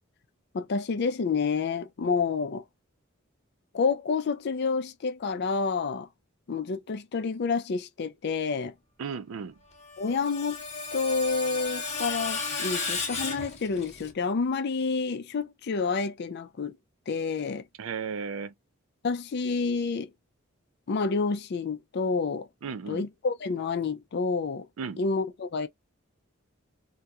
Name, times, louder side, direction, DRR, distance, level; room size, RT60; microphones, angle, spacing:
voice 1, 0.5-2.6 3.7-6.1 6.5-8.7 10.0-10.6 10.9-16.8 17.1-17.6 19.0-20.1 20.9-22.5 22.9-24.7 25.0-25.7, left 4 dB, 55° left, 0.4 m, -29 dB
voice 2, 9.0-9.6 17.8-18.5 22.6-23.1 24.8-25.0, right 6 dB, 80° right, 0.4 m, -35 dB
Screech, 9.8-14.1, left 4 dB, 35° left, 0.8 m, -34 dB
2.8 x 2.2 x 2.2 m
head